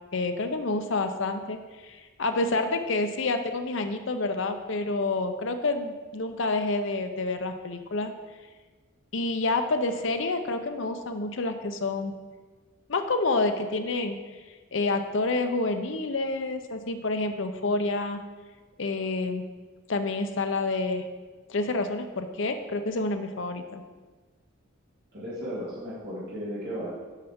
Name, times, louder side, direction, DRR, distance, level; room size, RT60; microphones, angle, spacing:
voice 1, 0.1-8.1 9.1-12.1 12.9-14.2 14.7-18.2 18.8-19.5 19.9-21.0 21.5-23.8, left 3 dB, 60° left, 7 dB, 0.6 m, -28 dB
voice 2, 25.1-26.9, equal, 50° right, -9 dB, 2.1 m, -35 dB
9.2 x 5.7 x 3.6 m, 1.4 s
head